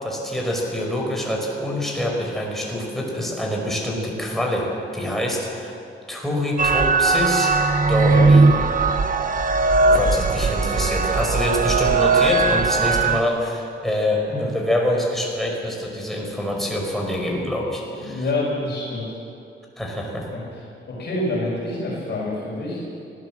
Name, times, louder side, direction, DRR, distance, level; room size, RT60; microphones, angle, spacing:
voice 1, 0.0-5.8 6.1-7.5 7.9-8.5 9.9-18.3 19.8-20.3, left 1 dB, ahead, -1 dB, 5.0 m, -25 dB
sound 1, 6.6-13.2, right 3 dB, 45° right, 1.1 m, -18 dB
voice 2, 7.9-8.3 9.8-10.0 11.4-11.6 14.3-14.4 17.9-19.1 20.3-20.4 20.9-22.8, left 2 dB, 60° left, -5 dB, 5.9 m, -27 dB
24.5 x 16.0 x 7.6 m, 2.6 s
wide cardioid pair, 140°, 20 cm